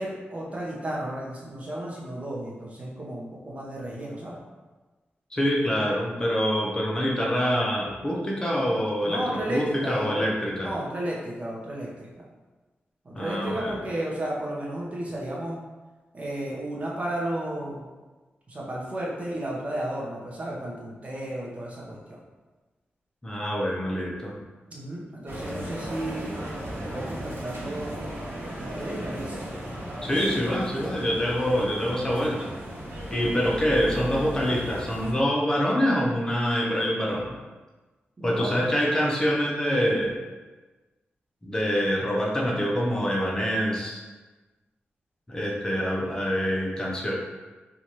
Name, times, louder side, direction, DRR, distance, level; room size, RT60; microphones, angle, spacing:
voice 1, 0.0-4.4 9.1-10.3 10.6-12.2 13.0-15.6 16.1-17.9 18.5-22.2 24.7-26.3 26.9-28.2 28.6-29.5 38.2-38.7, right 1 dB, 35° right, -4 dB, 0.8 m, -33 dB
voice 2, 5.3-10.7 13.1-13.7 23.2-24.4 30.0-32.5 33.1-37.3 38.2-40.2 41.4-44.0 45.3-47.1, equal, 15° left, -3 dB, 0.6 m, -25 dB
sound 1, 25.3-35.1, right 1 dB, 75° right, 1.0 m, -36 dB
3.1 x 2.4 x 4.1 m, 1.2 s
wide cardioid pair, 170°, 4 cm